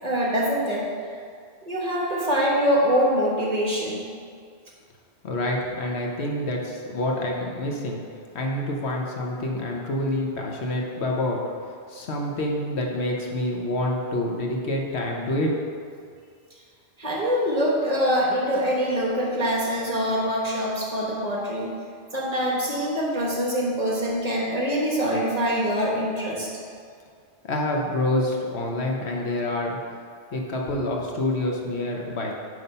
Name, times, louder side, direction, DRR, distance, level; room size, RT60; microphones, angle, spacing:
voice 1, 0.0-0.9 1.7-4.1 17.0-21.7 22.1-26.5, equal, 35° right, -3 dB, 1.2 m, -24 dB
voice 2, 5.2-8.0 8.3-11.4 11.9-15.6 27.5-29.8 30.3-32.3, left 1 dB, 70° left, 0 dB, 1.2 m, -27 dB
9.4 x 3.2 x 5.5 m, 2.2 s
omnidirectional pair, 1.2 m